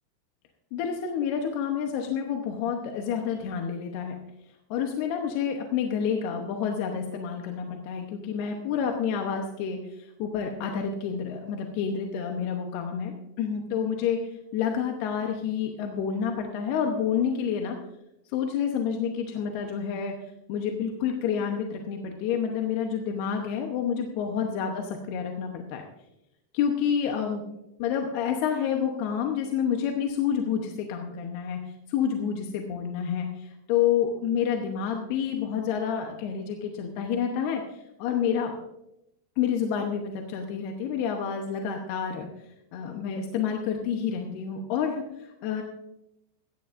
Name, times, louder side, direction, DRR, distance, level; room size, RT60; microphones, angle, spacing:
voice 1, 0.7-4.2 4.7-14.2 14.5-17.8 18.3-25.8 26.5-27.4 27.8-38.5 39.4-42.3 42.7-45.6, left 7 dB, 75° left, 2 dB, 2.8 m, -29 dB
16.5 x 16.0 x 2.6 m, 0.86 s
omnidirectional pair, 5.1 m